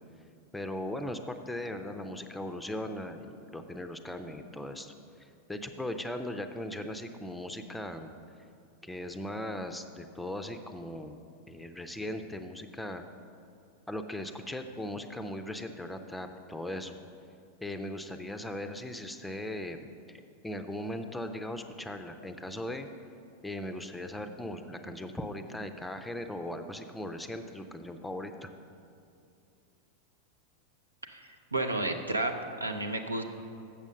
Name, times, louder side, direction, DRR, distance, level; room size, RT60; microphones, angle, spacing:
voice 1, 0.5-4.9 5.2-8.1 8.8-11.2 11.5-13.0 13.9-17.0 17.6-19.8 20.1-22.9 23.4-28.5, left 1 dB, 5° left, 7 dB, 0.5 m, -38 dB
voice 2, 31.0-32.3 32.6-33.2, right 2 dB, 80° right, 6 dB, 0.6 m, -32 dB
7.3 x 6.9 x 6.4 m, 2.6 s
figure-of-eight pair, 90°, 0 cm